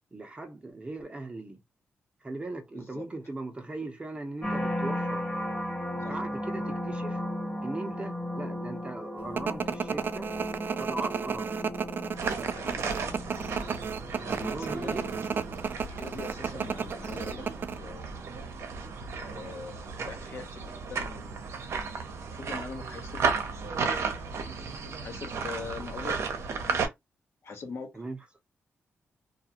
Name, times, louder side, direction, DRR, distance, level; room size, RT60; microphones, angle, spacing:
voice 1, 0.1-1.6 2.2-5.2 6.0-7.2 7.6-10.3 10.8-11.5 14.3-15.3 27.9-28.2, right 2 dB, 25° right, 0.7 m, -39 dB
voice 2, 2.7-3.1 6.0-6.1 12.4-13.0 14.2-15.2 16.0-17.5 17.7-18.1 19.2-21.4 22.2-23.3 23.7-24.3 25.0-26.2 26.5-26.8 27.4-28.0, left 4 dB, 60° left, 0.9 m, -43 dB
sound 1, 4.4-19.6 20.1-20.6, left 1 dB, 20° left, 1.0 m, -37 dB
sound 2, 9.4-17.8, right 6 dB, 45° right, 0.3 m, -32 dB
sound 3, 12.2-26.9, right 5 dB, 70° right, 0.7 m, -34 dB
2.4 x 2.3 x 2.8 m
cardioid pair, 90°, 5 cm